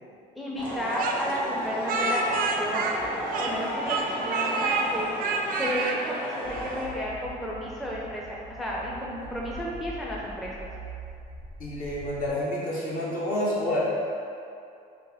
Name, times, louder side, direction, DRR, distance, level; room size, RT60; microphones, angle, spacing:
voice 1, 0.4-2.9 3.4-5.1 5.6-10.7, equal, ahead, -5 dB, 0.4 m, -32 dB
sound 1, 0.6-6.8, equal, 30° left, 1.2 m, -33 dB
Speech, 1.0-3.6 3.9-4.9 5.2-6.0, right 4 dB, 60° right, 0.4 m, -28 dB
sound 2, 6.4-12.3, right 1 dB, 85° left, 0.8 m, -43 dB
voice 2, 11.6-13.8, left 1 dB, 55° left, -6 dB, 1.1 m, -29 dB
3.3 x 3.0 x 3.4 m, 2.5 s
cardioid pair, 110°, 17 cm